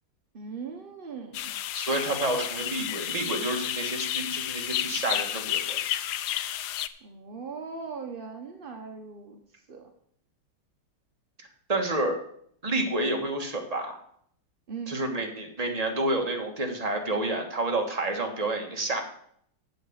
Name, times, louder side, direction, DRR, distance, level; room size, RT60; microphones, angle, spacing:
voice 1, 0.3-1.5 7.0-9.9 14.7-15.0, right 5 dB, 55° right, 4 dB, 0.5 m, -39 dB
sound 1, 1.3-6.9, left 12 dB, 90° left, 0.9 m, -31 dB
voice 2, 1.7-5.8 11.7-12.2 12.6-14.0 14.9-19.0, right 2 dB, 20° right, 3 dB, 1.3 m, -29 dB
7.8 x 7.3 x 7.2 m, 0.66 s
omnidirectional pair, 2.3 m